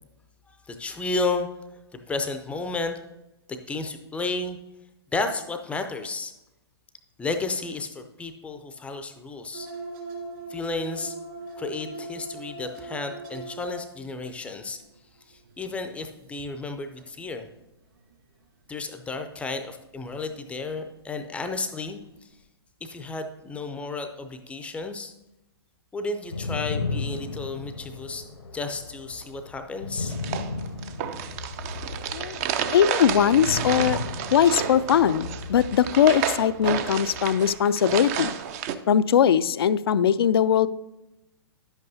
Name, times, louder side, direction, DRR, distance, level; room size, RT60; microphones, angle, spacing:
voice 1, 0.5-1.5 1.9-3.0 3.5-4.6 5.1-6.3 7.2-9.7 10.5-11.1 11.6-14.8 15.3-17.5 18.7-22.3 22.8-25.1 25.9-28.3 28.5-30.1, left 3 dB, 10° left, 7 dB, 0.5 m, -32 dB
sound 1, 9.5-14.2 14.6-15.1 15.3-17.3 18.0-18.1 20.0-20.4 20.7-20.8 21.4-22.0 22.4-22.5, right 3 dB, 55° right, 2.9 m, -40 dB
sound 2, 26.2-37.6, left 3 dB, 85° left, 1.0 m, -35 dB
sound 3, 30.1-38.7, right 9 dB, 35° right, 0.5 m, -31 dB
voice 2, 32.7-34.0 34.3-38.4 38.9-40.7, left 9 dB, 65° left, 16 dB, 0.4 m, -20 dB
10.5 x 8.0 x 2.7 m, 0.95 s
figure-of-eight pair, 120°, 14 cm